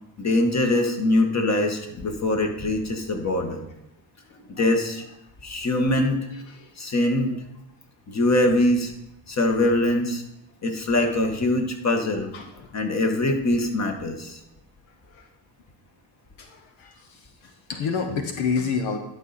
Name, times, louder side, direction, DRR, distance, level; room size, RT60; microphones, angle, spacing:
voice 1, 0.2-3.7 4.5-5.0 5.4-6.2 6.8-7.3 8.1-8.9 9.3-10.2 10.6-12.3 12.7-14.4, left 1 dB, 35° left, 4 dB, 1.8 m, -23 dB
voice 2, 6.3-6.7 12.3-12.7 15.1-15.3 16.4-19.0, left 5 dB, 85° left, 4 dB, 1.2 m, -30 dB
11.5 x 5.4 x 4.4 m, 0.85 s
cardioid pair, 80°, 45 cm